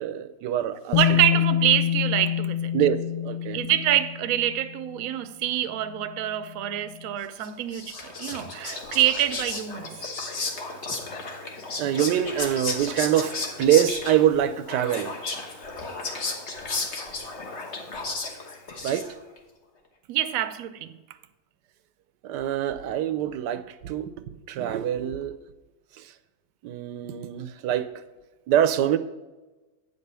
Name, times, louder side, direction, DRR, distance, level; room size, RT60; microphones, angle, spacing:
voice 1, 0.0-1.0 2.7-3.6 11.8-15.1 18.8-19.1 22.2-24.1 24.5-25.3 26.6-27.9 28.5-29.0, right 10 dB, 85° right, 1.2 m, -24 dB
Bass guitar, 0.9-4.9 6.0-6.1, left 10 dB, 75° left, 1.2 m, -26 dB
voice 2, 0.9-2.8 3.5-10.0 20.1-21.0, right 12 dB, 65° right, 1.0 m, -26 dB
Whispering, 7.4-19.4, left 3 dB, 45° left, 1.4 m, -34 dB
9.0 x 5.4 x 6.7 m
omnidirectional pair, 1.8 m